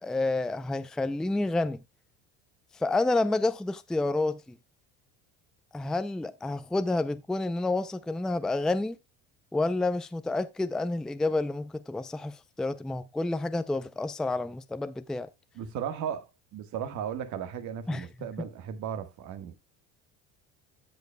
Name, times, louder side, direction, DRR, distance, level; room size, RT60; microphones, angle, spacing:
voice 1, 0.0-1.8 2.7-4.6 5.7-9.0 9.5-15.3 17.9-18.1, left 2 dB, ahead, 0.4 m, -29 dB
voice 2, 15.5-19.5, right 8 dB, 60° right, 1.5 m, -36 dB
15.5 x 5.2 x 2.2 m
cardioid pair, 120°, 33 cm